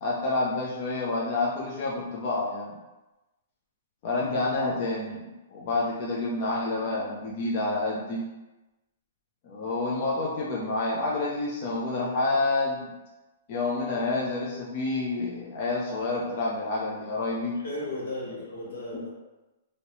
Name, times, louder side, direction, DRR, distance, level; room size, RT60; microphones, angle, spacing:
voice 1, 0.0-2.8 4.0-8.3 9.4-12.9 13.5-17.6, left 2 dB, 35° left, -4 dB, 0.5 m, -28 dB
voice 2, 17.5-19.1, left 2 dB, 80° left, -4 dB, 1.2 m, -36 dB
3.1 x 2.7 x 2.9 m, 1.1 s
hypercardioid pair, 170°, 0 cm